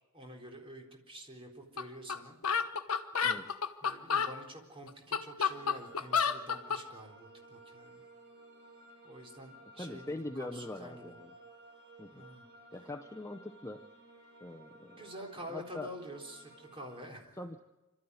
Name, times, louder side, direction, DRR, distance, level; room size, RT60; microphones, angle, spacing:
voice 1, 0.1-2.4 3.8-8.0 9.0-11.2 12.1-12.4 15.0-17.4, equal, 25° right, 1 dB, 4.0 m, -48 dB
sound 1, 1.8-1.9 2.1-2.2 2.4-4.3 4.9-6.8, left 6 dB, 80° left, 1.2 m, -30 dB
voice 2, 3.2-3.5 9.8-11.3 12.0-12.2 12.7-13.8 14.4-15.0 15.5-15.9 17.4-17.6, left 2 dB, 15° left, 5 dB, 0.8 m, -42 dB
sound 2, 5.4-17.0, right 2 dB, 50° right, 6.4 m, -56 dB
26.5 x 13.0 x 9.6 m, 1.1 s
head